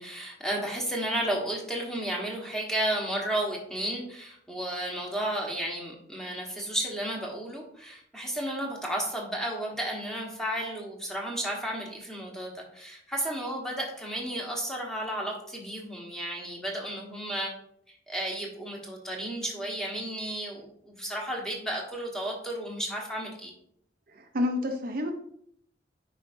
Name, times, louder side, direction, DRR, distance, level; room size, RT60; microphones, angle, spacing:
voice 1, 0.0-17.5 18.1-23.5, right 1 dB, 5° left, -1 dB, 1.4 m, -33 dB
voice 2, 24.1-25.1, left 2 dB, 50° right, 4 dB, 0.6 m, -29 dB
9.2 x 4.9 x 2.6 m, 0.68 s
head